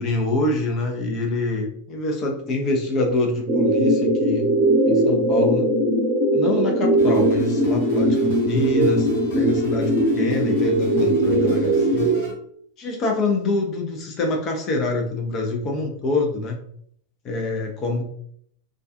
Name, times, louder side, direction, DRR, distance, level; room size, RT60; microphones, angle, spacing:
voice 1, 0.0-4.5 4.9-5.7 6.3-9.1 9.3-12.1 12.8-16.6 17.2-18.0, left 2 dB, 35° left, 2 dB, 0.6 m, -25 dB
sound 1, 3.5-12.2, right 1 dB, 35° right, 0.8 m, -20 dB
sound 2, 7.0-12.3, left 1 dB, 60° left, 1.0 m, -38 dB
2.3 x 2.3 x 2.4 m, 0.65 s
figure-of-eight pair, 90°, 0 cm